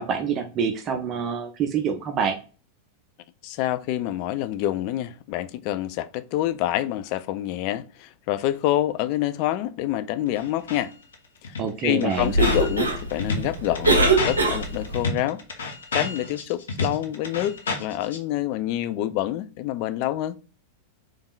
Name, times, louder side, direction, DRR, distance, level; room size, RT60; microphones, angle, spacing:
voice 1, 0.0-2.4 11.6-12.3, right 6 dB, 30° right, 0.5 m, -26 dB
voice 2, 3.4-10.9 11.4-11.6 11.8-20.4, left 14 dB, 45° left, 0.3 m, -27 dB
sound 1, 10.4-10.8 11.1-11.2 11.4-18.2, left 3 dB, 65° left, 0.7 m, -30 dB
Cough, 12.1-15.0, right 2 dB, 75° right, 0.7 m, -22 dB
3.5 x 3.1 x 2.4 m
figure-of-eight pair, 90°, 0 cm